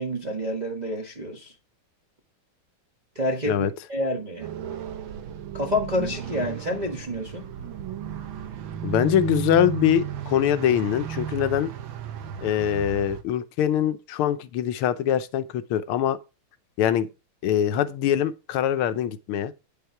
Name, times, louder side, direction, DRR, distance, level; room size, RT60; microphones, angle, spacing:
voice 1, 0.0-1.5 3.1-4.5 5.5-7.5, left 1 dB, 25° right, 1.2 m, -28 dB
sound 1, 4.4-13.2, right 8 dB, 70° right, 1.8 m, -34 dB
voice 2, 8.8-11.7 12.4-16.2 16.8-17.1 17.4-19.5, left 10 dB, 90° left, 1.6 m, -23 dB
9.5 x 5.5 x 4.6 m
omnidirectional pair, 2.3 m